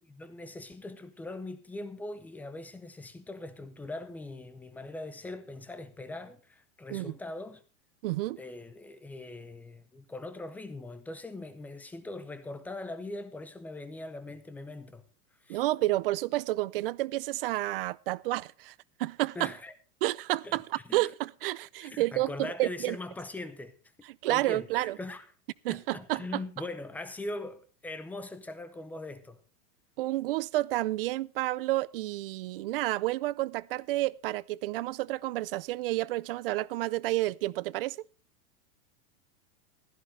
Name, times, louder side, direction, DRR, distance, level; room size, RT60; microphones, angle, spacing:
voice 1, 0.0-7.6 8.4-15.0 15.4-15.6 19.4-19.7 20.4-20.6 20.9-21.0 21.8-23.7 24.0-25.2 25.7-29.4, left 2 dB, 5° left, 0.5 m, -41 dB
voice 2, 8.0-8.4 15.5-18.7 19.0-19.5 20.0-23.0 24.2-25.0 25.6-26.2 30.0-38.0, right 17 dB, 40° right, 0.5 m, -30 dB
15.5 x 13.5 x 3.3 m
supercardioid pair, 160°, 44 cm